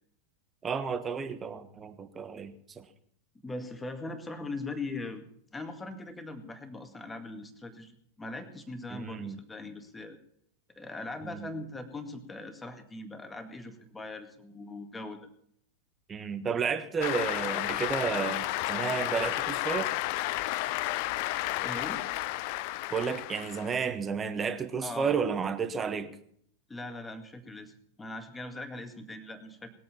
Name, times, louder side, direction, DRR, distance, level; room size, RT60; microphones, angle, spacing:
voice 1, 0.6-2.8 8.9-9.4 11.2-11.5 16.1-20.0 22.9-26.2, right 6 dB, 20° right, 1.4 m, -32 dB
voice 2, 3.4-5.2 5.5-10.2 10.8-15.3 21.6-22.0 24.8-25.2 26.7-27.7 28.0-29.7, left 2 dB, 10° left, 2.1 m, -40 dB
Cheering / Applause, 17.0-23.9, left 18 dB, 45° left, 0.5 m, -32 dB
20.5 x 8.7 x 7.1 m
figure-of-eight pair, 90°, 0 cm